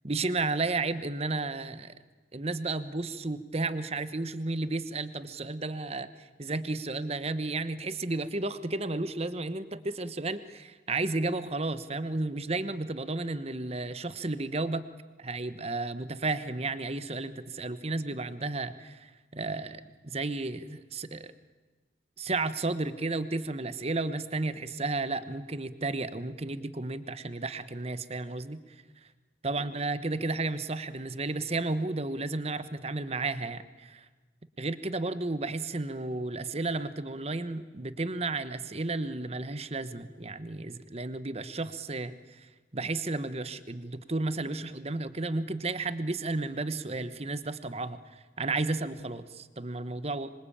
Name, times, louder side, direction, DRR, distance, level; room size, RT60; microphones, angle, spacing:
voice 1, 0.0-1.9 2.3-14.9 15.2-21.3 22.2-28.8 29.4-34.1 34.6-50.3, right 3 dB, 35° right, 13 dB, 1.1 m, -33 dB
26.0 x 24.0 x 8.8 m, 1.3 s
head